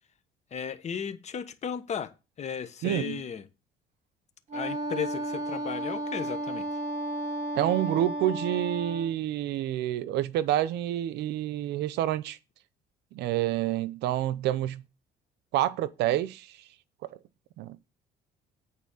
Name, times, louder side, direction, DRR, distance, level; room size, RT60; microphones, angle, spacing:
voice 1, 0.5-2.1 2.4-3.4 4.5-6.7, left 7 dB, 40° left, 1.1 m, -35 dB
voice 2, 2.8-3.2 7.5-12.4 13.1-14.8 15.5-16.6 17.6-17.8, right 13 dB, 80° right, 0.7 m, -28 dB
Wind instrument woodwind instrument, 4.5-9.1, right 1 dB, 45° right, 3.4 m, -33 dB
8.9 x 4.2 x 7.1 m
cardioid pair, 110°, 17 cm